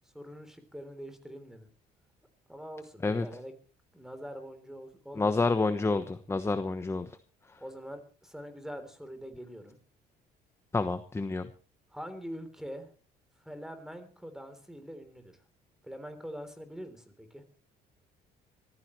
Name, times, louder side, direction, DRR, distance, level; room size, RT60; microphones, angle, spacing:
voice 1, 0.1-1.7 2.5-3.5 3.9-5.3 7.6-9.8 11.9-12.9 13.4-15.3 15.8-17.4, equal, 5° right, 10 dB, 3.5 m, -44 dB
voice 2, 5.2-7.1 10.7-11.5, left 3 dB, 15° left, 10 dB, 1.1 m, -28 dB
24.5 x 15.0 x 3.2 m, 0.36 s
cardioid pair, 110°, 17 cm